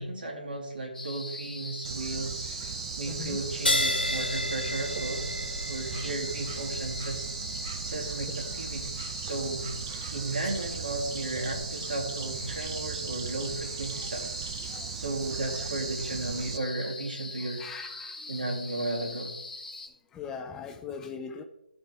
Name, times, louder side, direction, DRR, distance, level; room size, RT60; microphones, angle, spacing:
voice 1, 0.0-2.5 3.0-5.3 5.7-7.3 7.8-8.8 9.2-9.7 10.1-14.5 14.9-17.7 18.3-19.3, right 2 dB, 70° right, 0 dB, 2.6 m, -34 dB
sound 1, 0.9-19.9, left 2 dB, 65° left, 2.2 m, -41 dB
Bird / Insect, 1.8-16.6, right 9 dB, 35° right, 0.6 m, -38 dB
voice 2, 3.1-3.4 14.7-14.8 15.6-15.7 17.6-18.1 20.1-21.4, left 6 dB, 10° left, 6 dB, 0.4 m, -40 dB
sound 2, 3.7-10.6, left 1 dB, 90° left, 1.7 m, -34 dB
14.0 x 5.3 x 3.5 m, 0.87 s
figure-of-eight pair, 145°, 5 cm